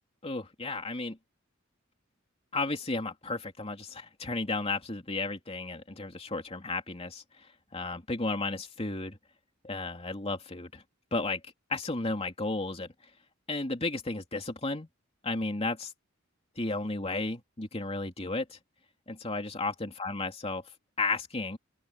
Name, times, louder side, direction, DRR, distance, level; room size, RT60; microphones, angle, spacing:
voice 1, 0.2-1.2 2.5-7.2 7.7-9.2 9.6-10.8 11.1-11.4 11.7-12.9 13.5-14.9 15.2-15.9 16.6-18.6 19.1-20.6 21.0-21.6, left 3 dB, 30° left, 2.9 m, -33 dB
open air
head